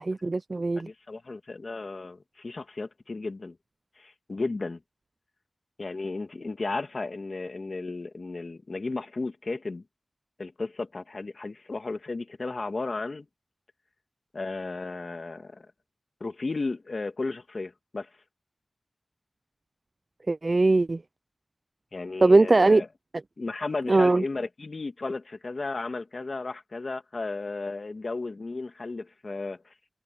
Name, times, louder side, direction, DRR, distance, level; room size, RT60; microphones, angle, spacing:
voice 1, 0.0-0.9 20.3-21.0 22.2-22.8 23.9-24.2, right 2 dB, 45° right, 0.5 m, -20 dB
voice 2, 0.8-3.6 4.0-4.8 5.8-9.8 10.4-13.3 14.3-15.6 16.2-18.1 21.9-22.9 23.4-29.7, left 3 dB, 60° left, 2.4 m, -34 dB
wide cardioid pair, 65°, 0 cm